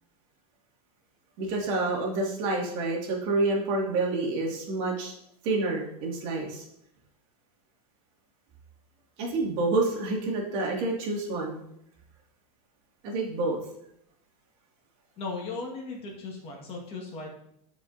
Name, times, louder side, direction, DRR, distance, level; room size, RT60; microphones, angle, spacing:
voice 1, 1.4-5.1 5.4-6.6 9.2-11.6 13.0-13.6, right 2 dB, 45° right, -1 dB, 2.2 m, -28 dB
voice 2, 15.2-17.3, left 3 dB, 30° left, 0 dB, 1.6 m, -37 dB
14.5 x 5.2 x 2.7 m, 0.75 s
supercardioid pair, 155°, 19 cm